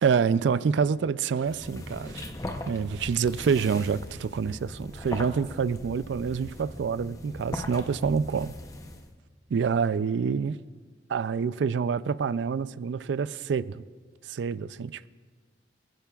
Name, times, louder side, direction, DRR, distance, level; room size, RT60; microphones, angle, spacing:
voice 1, 0.0-2.3 2.7-8.5 9.5-10.6 11.1-13.8 14.3-15.1, right 6 dB, 80° right, 0.4 m, -27 dB
sound 1, 1.4-9.1, left 1 dB, 20° left, 0.7 m, -39 dB
28.5 x 10.5 x 2.4 m
head